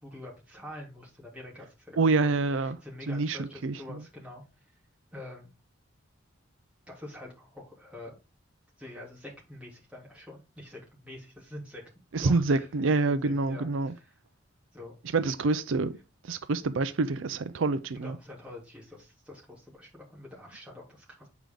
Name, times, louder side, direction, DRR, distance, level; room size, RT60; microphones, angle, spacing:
voice 1, 0.0-4.4 5.1-5.5 6.9-8.1 8.8-11.8 12.1-12.7 13.0-14.2 14.7-14.9 15.3-15.4 18.0-21.3, left 1 dB, 5° right, 3.1 m, -46 dB
voice 2, 2.0-2.8 3.1-4.0 12.1-13.9 15.1-15.9 16.3-18.2, right 3 dB, 80° right, 0.5 m, -27 dB
8.0 x 4.9 x 3.8 m
head